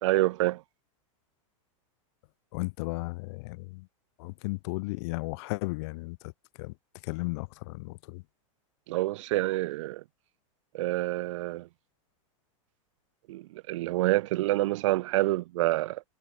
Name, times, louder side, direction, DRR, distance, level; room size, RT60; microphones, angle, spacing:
voice 1, 0.0-0.6 8.9-10.0 10.7-11.7 13.3-16.0, right 17 dB, 65° right, 0.9 m, -27 dB
voice 2, 2.5-3.9 4.2-6.3 6.6-6.7 7.0-8.2, left 25 dB, 55° left, 3.8 m, -35 dB
supercardioid pair, 150°, 17 cm